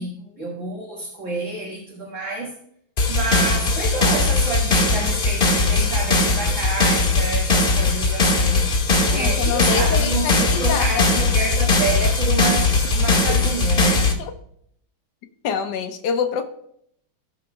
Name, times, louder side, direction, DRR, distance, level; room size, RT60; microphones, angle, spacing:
voice 1, 0.0-2.5 3.1-8.7 9.1-14.1, right 2 dB, 40° right, 2.1 m, -29 dB
sound 1, 3.0-14.1, left 3 dB, 30° left, 1.6 m, -19 dB
voice 2, 9.1-11.2 14.2-14.3 15.4-16.4, left 6 dB, 65° left, 1.3 m, -26 dB
18.0 x 6.2 x 2.3 m
omnidirectional pair, 2.3 m